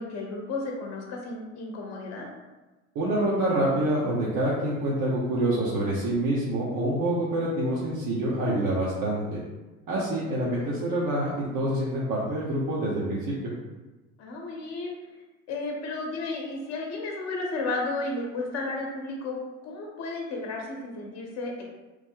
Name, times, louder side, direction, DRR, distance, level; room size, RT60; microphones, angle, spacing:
voice 1, 0.0-2.3 10.6-10.8 14.2-14.9 15.5-21.6, left 2 dB, 40° left, -1 dB, 0.9 m, -33 dB
voice 2, 2.9-9.4 9.9-13.5, right 1 dB, 50° right, -6 dB, 0.9 m, -26 dB
3.1 x 2.0 x 3.6 m, 1.1 s
hypercardioid pair, 80°, 40 cm